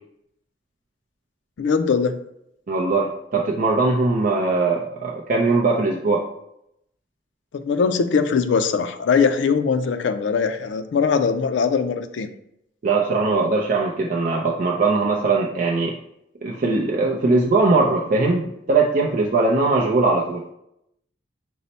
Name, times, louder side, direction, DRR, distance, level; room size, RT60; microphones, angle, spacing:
voice 1, 1.6-2.2 7.5-12.3, left 5 dB, 80° left, 9 dB, 0.4 m, -21 dB
voice 2, 2.7-6.2 12.8-15.9 16.4-20.4, right 3 dB, 50° right, -2 dB, 0.4 m, -20 dB
5.3 x 2.0 x 4.0 m, 0.78 s
head